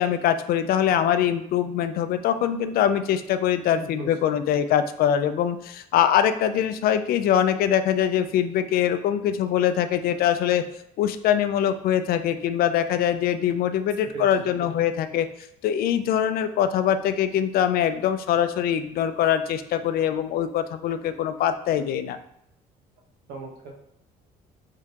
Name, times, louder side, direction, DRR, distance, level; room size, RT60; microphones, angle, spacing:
voice 1, 0.0-10.6 11.0-15.3 15.6-22.2, left 9 dB, 65° left, 10 dB, 0.4 m, -23 dB
voice 2, 3.8-4.1 14.1-14.5 23.3-23.7, right 3 dB, 80° right, 1 dB, 1.0 m, -37 dB
3.6 x 3.5 x 2.8 m, 0.77 s
cardioid pair, 110°, 17 cm